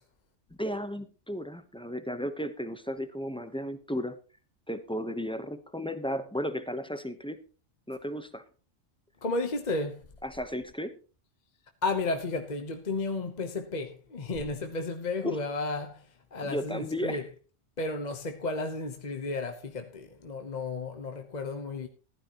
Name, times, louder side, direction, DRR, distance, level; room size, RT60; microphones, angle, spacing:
voice 1, 0.6-4.2 4.7-7.4 7.9-8.4 10.2-10.9 15.2-15.4 16.4-17.3, equal, 5° left, 0.8 m, -34 dB
voice 2, 9.2-10.0 11.8-16.0 16.3-17.2 17.8-21.9, left 3 dB, 35° left, 1.1 m, -33 dB
15.0 x 12.0 x 3.0 m
omnidirectional pair, 1.3 m